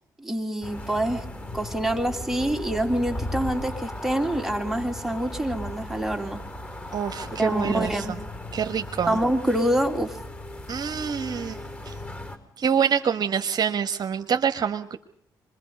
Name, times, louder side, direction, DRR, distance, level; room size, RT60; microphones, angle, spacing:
voice 1, 0.2-1.2 1.5-6.4 7.4-8.1 9.1-10.2, right 1 dB, 5° right, 3 dB, 2.8 m, -26 dB
sound 1, 0.6-12.4, left 1 dB, 20° left, 4.6 m, -36 dB
voice 2, 6.9-8.0 8.5-9.2 10.7-11.9 12.6-15.0, right 7 dB, 50° right, 6 dB, 1.2 m, -26 dB
25.0 x 22.0 x 5.3 m, 0.63 s
hypercardioid pair, 55°, 9 cm